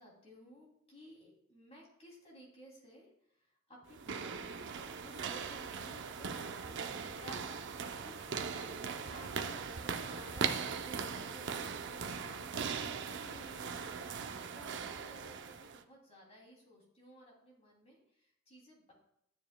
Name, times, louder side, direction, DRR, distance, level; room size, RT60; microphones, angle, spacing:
voice 1, 0.0-18.9, equal, 30° left, -3 dB, 2.9 m, -57 dB
sound 1, 3.9-15.8, right 6 dB, 60° right, 0.6 m, -40 dB
12.0 x 9.1 x 2.3 m, 0.75 s
head